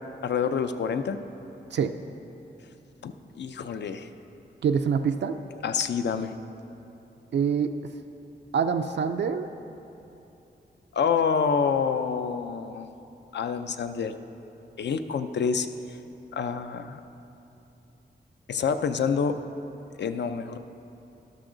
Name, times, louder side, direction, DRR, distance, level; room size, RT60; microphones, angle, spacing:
voice 1, 0.2-1.2 3.0-4.1 5.6-6.3 10.9-12.9 13.3-14.2 14.8-15.7 16.3-17.0 18.5-19.4 20.0-20.6, left 6 dB, 80° left, 9 dB, 0.5 m, -27 dB
voice 2, 4.6-5.4 7.3-7.7 8.5-9.5, right 6 dB, 80° right, 6 dB, 0.4 m, -25 dB
12.5 x 12.5 x 3.9 m, 2.9 s
wide cardioid pair, 155°, 18 cm